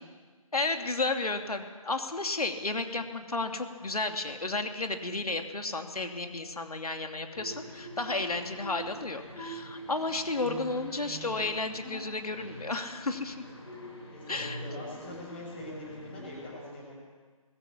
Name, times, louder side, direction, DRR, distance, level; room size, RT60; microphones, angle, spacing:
voice 1, 0.5-13.4 14.3-14.6, left 3 dB, 85° left, 5 dB, 2.7 m, -32 dB
sound 1, 7.3-16.5, right 1 dB, 45° left, 5.5 m, -44 dB
voice 2, 14.1-17.1, left 1 dB, 20° left, -2 dB, 6.4 m, -42 dB
20.5 x 16.0 x 8.7 m, 1.5 s
figure-of-eight pair, 170°, 19 cm